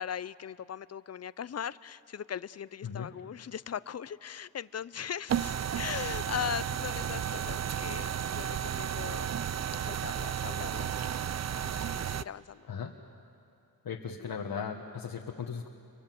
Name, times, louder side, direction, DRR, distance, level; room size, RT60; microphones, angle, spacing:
voice 1, 0.0-9.4 9.8-11.0 11.5-12.7 14.2-14.3, left 8 dB, 45° left, 18 dB, 0.6 m, -39 dB
sound 1, 5.3-12.2, right 9 dB, 45° right, 0.5 m, -33 dB
voice 2, 13.8-15.7, left 6 dB, 75° left, 0 dB, 1.6 m, -37 dB
29.0 x 24.0 x 7.8 m, 2.7 s
cardioid pair, 85°, 37 cm